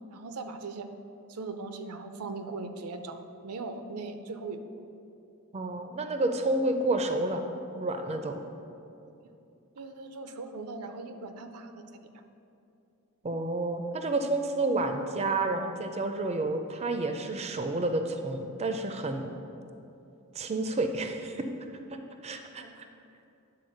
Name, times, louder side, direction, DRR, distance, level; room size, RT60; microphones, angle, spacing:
voice 1, 0.1-0.9 1.3-4.6 9.8-11.8 21.1-21.2 22.5-22.7, right 3 dB, 85° right, 8 dB, 0.6 m, -39 dB
voice 2, 5.5-7.4 7.7-8.4 13.2-19.3 20.3-21.5 22.2-22.9, right 2 dB, 30° right, 6 dB, 0.4 m, -30 dB
9.7 x 4.1 x 6.4 m, 2.8 s
head